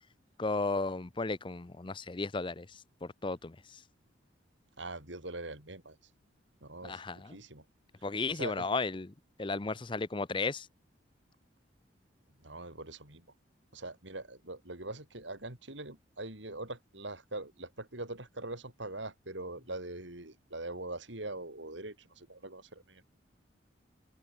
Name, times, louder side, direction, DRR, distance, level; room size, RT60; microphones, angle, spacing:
voice 1, 0.4-2.7 3.0-3.8 6.8-7.4 8.0-9.1 9.4-10.7, left 3 dB, 25° left, 0.6 m, -34 dB
voice 2, 4.8-6.0 6.6-7.6 8.3-8.7 12.4-13.2 13.7-23.0, right 2 dB, 75° right, 5.7 m, -42 dB
open air
head